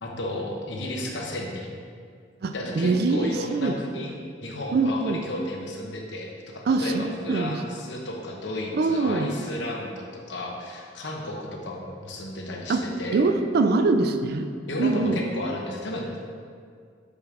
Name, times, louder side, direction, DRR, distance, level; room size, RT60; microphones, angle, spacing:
voice 1, 0.0-1.8 2.5-4.1 4.4-13.2 14.7-16.2, left 1 dB, 70° left, 0 dB, 1.0 m, -33 dB
voice 2, 2.4-3.8 4.7-5.2 6.7-7.6 8.7-9.3 12.7-12.9 13.1-14.5 14.8-15.2, right 3 dB, 60° right, 7 dB, 0.4 m, -23 dB
5.3 x 5.1 x 5.0 m, 2.1 s
head